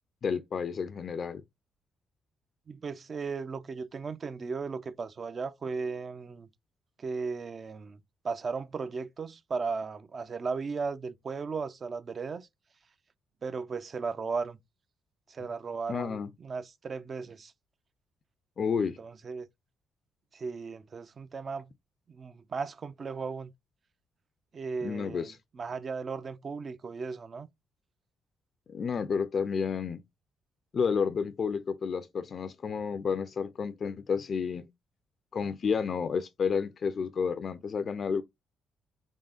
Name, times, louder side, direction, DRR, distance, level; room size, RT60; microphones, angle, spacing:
voice 1, 0.2-1.4 15.9-16.3 18.6-19.0 24.8-25.4 28.7-30.0 30.7-34.7 35.3-38.2, left 6 dB, 50° left, 0.4 m, -31 dB
voice 2, 2.7-6.5 7.0-8.0 8.2-12.5 13.4-14.6 15.3-17.5 19.0-19.5 20.3-21.7 22.1-23.5 24.5-27.5, right 4 dB, 40° right, 0.5 m, -36 dB
3.6 x 3.5 x 2.4 m
cardioid pair, 90°, 0 cm